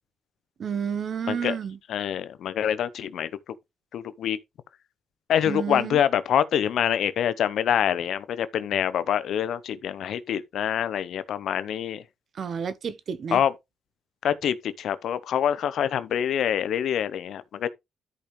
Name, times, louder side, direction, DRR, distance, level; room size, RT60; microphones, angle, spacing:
voice 1, 0.6-1.8 5.5-6.0 12.3-13.4, right 7 dB, 50° right, 1.0 m, -30 dB
voice 2, 1.9-3.3 3.9-4.4 5.3-12.0 13.3-13.5 14.2-17.7, left 9 dB, 70° left, 0.8 m, -25 dB
13.0 x 5.2 x 3.2 m
cardioid pair, 90°, 0 cm